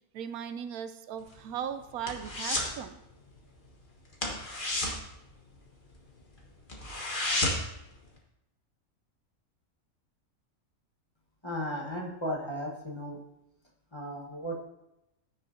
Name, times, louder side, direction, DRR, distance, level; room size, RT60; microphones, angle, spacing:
voice 1, 0.1-3.0, right 8 dB, 80° right, 10 dB, 1.1 m, -37 dB
sound 1, 1.2-2.8 3.1-3.4 3.6-3.8 4.1-6.0 6.4-6.5 6.7-7.8 8.2-8.3, left 1 dB, 35° left, 1.6 m, -32 dB
voice 2, 11.4-13.2 13.9-14.6, equal, 20° left, -3 dB, 1.3 m, -35 dB
15.0 x 6.4 x 2.7 m, 0.88 s
omnidirectional pair, 1.5 m